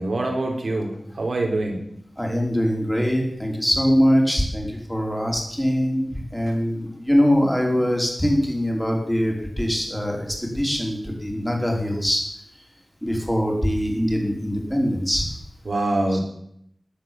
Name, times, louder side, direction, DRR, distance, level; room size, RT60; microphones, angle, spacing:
voice 1, 0.0-1.8 15.7-16.2, right 2 dB, 75° right, 0 dB, 3.9 m, -24 dB
voice 2, 2.2-12.2 13.0-15.3 16.1-16.2, equal, 5° left, 0 dB, 4.8 m, -22 dB
13.5 x 10.0 x 7.8 m, 0.71 s
wide cardioid pair, 65°, 0 cm